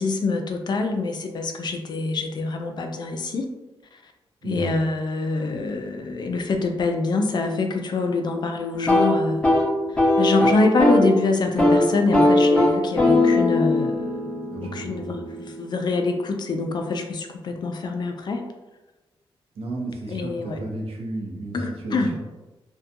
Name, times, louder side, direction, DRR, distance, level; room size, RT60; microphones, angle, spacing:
voice 1, 0.0-3.5 4.4-9.4 10.2-18.4 20.1-20.6 21.5-22.1, left 3 dB, 50° left, 5 dB, 0.3 m, -25 dB
voice 2, 4.4-4.8 14.5-15.2 19.6-22.2, right 2 dB, 80° right, 0 dB, 0.6 m, -33 dB
sound 1, 8.7-11.1 11.4-11.8 12.1-16.0, left 1 dB, 10° left, 0.7 m, -20 dB
2.6 x 2.2 x 2.5 m, 1.1 s
cardioid pair, 105°, 10 cm